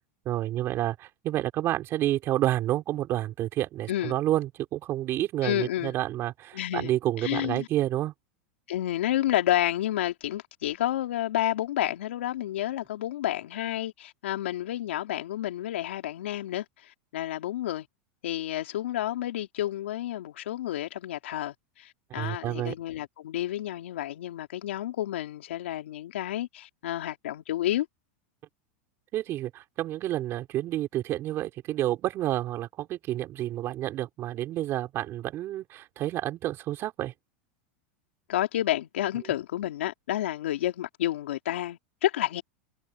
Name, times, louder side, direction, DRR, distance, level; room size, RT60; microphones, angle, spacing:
voice 1, 0.2-8.1 22.1-22.7 29.1-37.1, right 14 dB, 40° right, 4.2 m, -29 dB
voice 2, 5.4-5.9 6.5-7.7 8.7-17.9 18.2-27.9 38.3-42.4, left 13 dB, 80° left, 3.1 m, -30 dB
hypercardioid pair, 115°, 6 cm